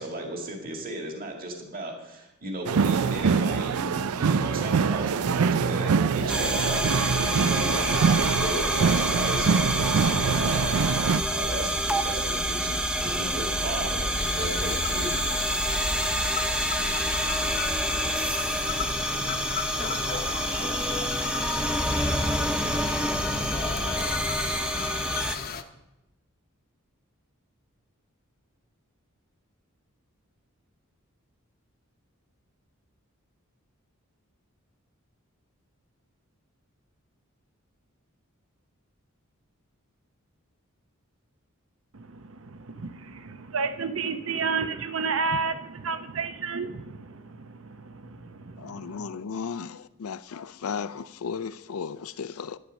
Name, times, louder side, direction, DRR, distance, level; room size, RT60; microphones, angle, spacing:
voice 1, 0.0-15.2, right 1 dB, 40° right, 1.9 m, -36 dB
sound 1, 2.7-11.2, right 6 dB, 90° right, 0.4 m, -24 dB
sound 2, 6.3-25.4, equal, 5° right, 0.8 m, -27 dB
sound 3, 14.2-25.6, left 7 dB, 45° left, 0.8 m, -35 dB
voice 2, 41.9-49.1, right 4 dB, 65° right, 0.8 m, -32 dB
voice 3, 48.6-52.6, left 6 dB, 80° left, 0.4 m, -35 dB
11.5 x 10.0 x 6.3 m
head